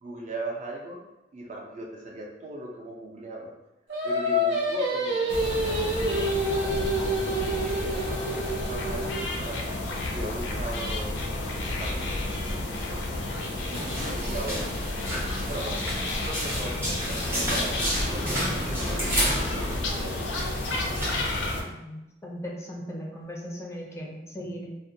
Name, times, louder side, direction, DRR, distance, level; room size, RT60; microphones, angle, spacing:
voice 1, 0.0-1.0 1.3-3.5 4.0-6.7 7.1-9.6 10.1-13.0 13.6-15.8 16.2-17.8 18.1-20.4, right 1 dB, 40° right, -1 dB, 0.4 m, -39 dB
Singing, 3.9-9.3, equal, 80° right, 0.6 m, -28 dB
sound 1, 5.3-21.6, left 2 dB, 80° left, 0.4 m, -31 dB
sound 2, 13.7-21.3, equal, 15° right, 0.7 m, -31 dB
voice 2, 21.5-24.7, equal, 15° left, -1 dB, 0.4 m, -38 dB
2.4 x 2.1 x 2.7 m, 0.97 s
head